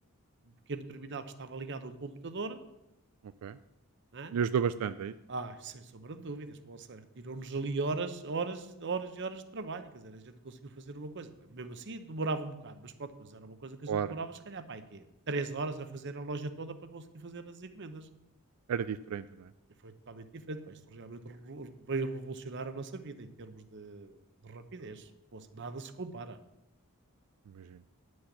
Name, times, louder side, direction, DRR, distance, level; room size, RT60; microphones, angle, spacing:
voice 1, 0.7-2.6 4.1-4.3 5.3-18.1 19.8-24.2 24.4-26.4, right 3 dB, 55° right, 11 dB, 0.8 m, -39 dB
voice 2, 4.3-5.1 13.9-14.2 18.7-19.5 27.5-27.8, right 7 dB, 90° right, 13 dB, 0.4 m, -32 dB
9.9 x 6.3 x 7.2 m, 0.90 s
head